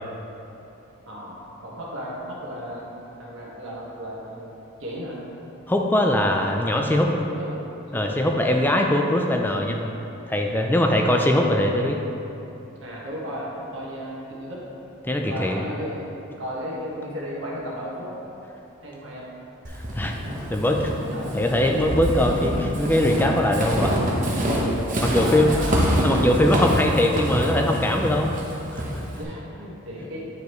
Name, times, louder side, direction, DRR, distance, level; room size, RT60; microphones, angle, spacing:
voice 1, 1.0-2.9 3.2-4.5 4.8-5.2 7.3-7.6 7.9-8.2 10.9-11.3 12.8-14.6 15.3-16.1 16.4-18.2 18.8-19.3 21.1-21.4 25.1-25.9 29.2-30.2, equal, 65° right, -5 dB, 1.4 m, -34 dB
voice 2, 5.7-7.1 7.9-9.9 10.3-12.0 15.0-15.6 19.9-20.1 20.5-20.9 21.3-24.0 25.0-25.5 26.0-28.3 28.7-29.0, left 1 dB, 10° left, 2 dB, 0.4 m, -21 dB
Walk footsteps / Squeak, 19.6-29.2, equal, 35° right, 0.9 m, -26 dB
9.3 x 5.0 x 3.1 m, 3.0 s
head